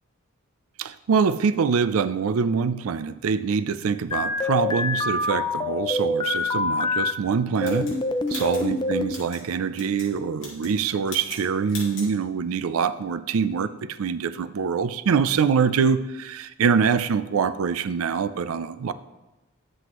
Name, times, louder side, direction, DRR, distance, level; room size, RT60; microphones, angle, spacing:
voice 1, 0.8-7.9 8.3-18.9, right 6 dB, 70° right, 13 dB, 0.4 m, -24 dB
sound 1, 4.1-7.1 7.6-9.2, left 3 dB, 20° left, 0.4 m, -26 dB
sound 2, 7.6-9.4 9.7-10.1 10.4-10.8 11.0-11.4 11.7-12.1, left 3 dB, 55° left, 2.8 m, -39 dB
9.7 x 7.7 x 3.0 m, 1.0 s
head